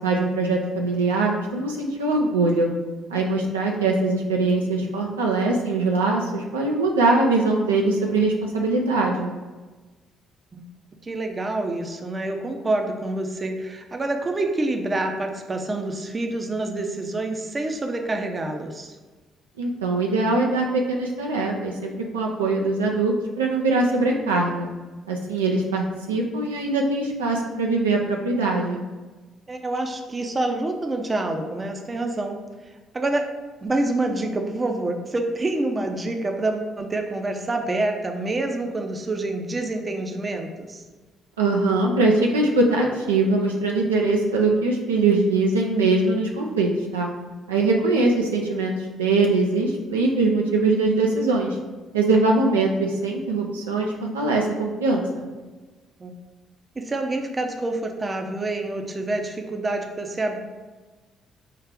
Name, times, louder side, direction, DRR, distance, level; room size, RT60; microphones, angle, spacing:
voice 1, 0.0-2.7 3.1-9.3 19.6-24.7 25.1-28.8 41.4-47.1 47.5-51.6 51.9-55.1, right 3 dB, 85° right, 0 dB, 0.3 m, -22 dB
voice 2, 11.0-18.9 29.5-32.4 32.9-33.2 33.6-40.8 56.0-56.1 56.8-60.4, right 2 dB, 30° right, 4 dB, 0.5 m, -27 dB
4.8 x 2.4 x 3.5 m, 1.3 s
figure-of-eight pair, 45°, 0 cm